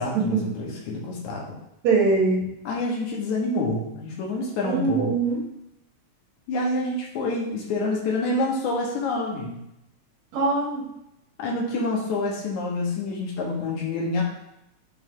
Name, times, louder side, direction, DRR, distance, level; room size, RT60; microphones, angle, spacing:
voice 1, 0.0-1.6 2.7-5.1 6.5-9.6 11.4-14.2, left 2 dB, 75° left, -2 dB, 2.5 m, -27 dB
voice 2, 1.8-2.5 4.6-5.4 10.3-10.8, right 4 dB, 65° right, -3 dB, 2.4 m, -22 dB
8.5 x 3.2 x 3.7 m, 0.84 s
omnidirectional pair, 3.5 m